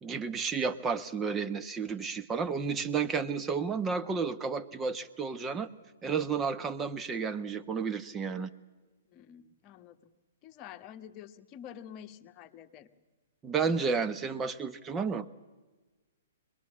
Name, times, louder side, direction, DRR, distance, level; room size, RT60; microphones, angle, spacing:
voice 1, 0.0-5.7 6.0-8.5 13.4-15.3, right 5 dB, 15° right, 10 dB, 1.1 m, -32 dB
voice 2, 9.1-10.1 10.4-12.9, left 9 dB, 30° left, 7 dB, 1.4 m, -48 dB
25.0 x 21.5 x 8.7 m, 1.3 s
figure-of-eight pair, 120°, 0 cm